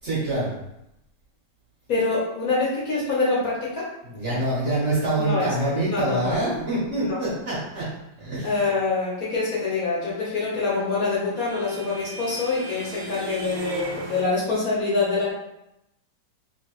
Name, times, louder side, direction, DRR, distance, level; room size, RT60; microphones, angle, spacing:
voice 1, 0.0-0.5 4.0-7.9 8.2-8.6, right 1 dB, 45° right, -8 dB, 1.1 m, -25 dB
voice 2, 1.9-3.9 5.2-5.5 5.9-6.2 7.1-7.2 8.4-15.3, left 3 dB, 55° left, -7 dB, 1.2 m, -25 dB
sound 1, 10.4-14.2, right 1 dB, 65° right, 1.1 m, -37 dB
3.1 x 2.8 x 2.9 m, 0.86 s
omnidirectional pair, 2.0 m